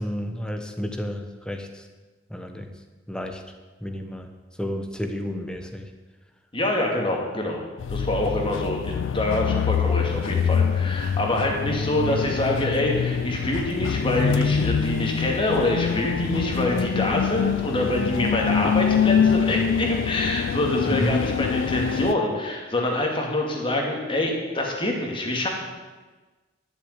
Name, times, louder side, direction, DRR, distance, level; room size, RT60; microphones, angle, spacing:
voice 1, 0.0-1.9 2.3-2.7 3.1-3.4 3.8-5.9 20.9-21.2, equal, 5° left, 5 dB, 1.1 m, -31 dB
voice 2, 6.5-7.6 7.9-25.5, left 1 dB, 25° left, 0 dB, 2.3 m, -25 dB
sound 1, 7.8-22.1, left 7 dB, 75° left, 0.3 m, -25 dB
11.5 x 6.9 x 9.6 m, 1.3 s
head